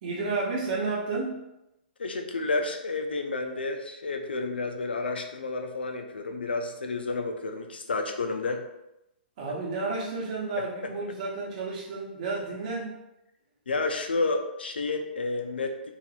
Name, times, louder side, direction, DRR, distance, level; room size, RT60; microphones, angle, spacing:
voice 1, 0.0-1.4 9.4-12.9, right 3 dB, 50° right, -4 dB, 1.0 m, -31 dB
voice 2, 2.0-8.6 13.7-15.9, left 3 dB, 80° left, 5 dB, 0.5 m, -30 dB
4.1 x 2.5 x 2.3 m, 0.89 s
hypercardioid pair, 120°, 5 cm